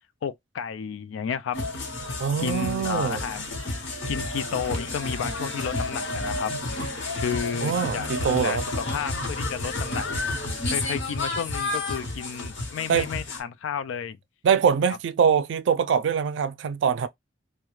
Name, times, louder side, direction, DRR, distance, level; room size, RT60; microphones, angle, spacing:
voice 1, 0.2-1.6 2.4-3.5 4.1-6.5 7.1-14.2, left 7 dB, 90° left, 0.3 m, -32 dB
sound 1, 1.5-13.4, left 2 dB, 70° left, 0.9 m, -31 dB
voice 2, 2.2-3.2 7.6-8.6 12.9-13.1 14.4-17.1, right 7 dB, 65° right, 0.3 m, -23 dB
2.3 x 2.2 x 3.0 m
head